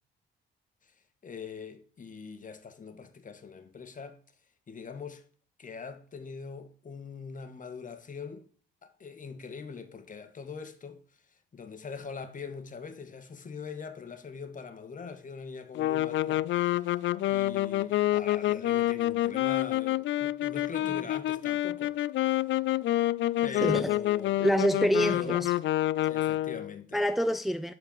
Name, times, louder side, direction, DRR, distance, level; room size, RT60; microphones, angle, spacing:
voice 1, 1.2-4.2 4.7-5.2 5.6-8.5 8.8-11.0 11.3-16.9 17.3-22.0 22.2-22.5 23.4-24.4 25.0-25.3 26.1-27.0, left 5 dB, 40° left, 1.8 m, -43 dB
sound 1, 15.7-26.7, left 14 dB, 70° left, 0.4 m, -28 dB
voice 2, 23.6-23.9 24.4-25.5 26.9-27.7, equal, ahead, 0.6 m, -26 dB
11.5 x 4.9 x 7.3 m
cardioid pair, 90°, 20 cm